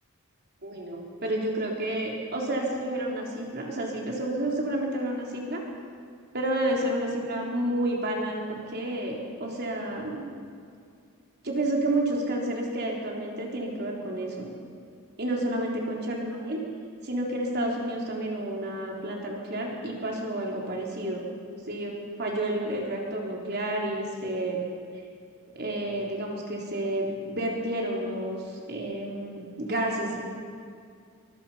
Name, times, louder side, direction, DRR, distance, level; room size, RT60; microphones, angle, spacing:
voice 1, 0.6-5.6 6.3-10.3 11.4-14.5 15.2-16.6 17.0-21.3 21.7-24.6 25.6-30.2, right 1 dB, 50° right, -1 dB, 3.8 m, -30 dB
25.0 x 23.0 x 5.8 m, 2.3 s
head